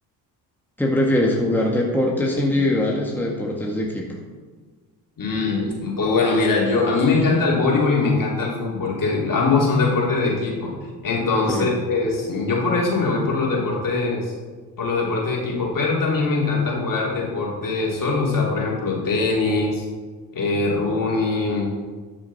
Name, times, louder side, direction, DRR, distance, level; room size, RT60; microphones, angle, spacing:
voice 1, 0.8-4.1 11.5-11.7, left 1 dB, 5° left, -2 dB, 1.8 m, -22 dB
voice 2, 5.2-10.7 11.0-14.3 14.8-19.8 20.3-21.7, left 3 dB, 45° left, -3 dB, 3.4 m, -22 dB
12.5 x 6.3 x 4.2 m, 1.4 s
hypercardioid pair, 55°, 46 cm